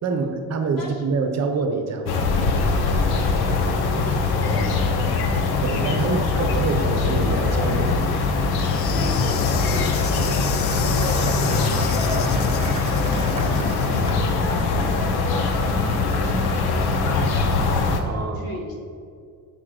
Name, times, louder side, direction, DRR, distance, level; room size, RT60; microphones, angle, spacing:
voice 1, 0.0-2.3 5.6-7.9 18.0-18.6, right 4 dB, 45° right, 6 dB, 0.9 m, -26 dB
sound 1, 2.1-18.0, left 3 dB, 90° left, 0.9 m, -22 dB
voice 2, 3.4-5.1 6.1-6.9 8.9-17.7 18.3-18.8, left 2 dB, 70° left, 0 dB, 1.6 m, -36 dB
Insect, 8.6-14.1, left 9 dB, 40° left, 0.4 m, -33 dB
Applause, 9.4-14.5, right 1 dB, 15° right, 1.6 m, -36 dB
6.9 x 3.7 x 6.4 m, 2.2 s
cardioid pair, 125°, 37 cm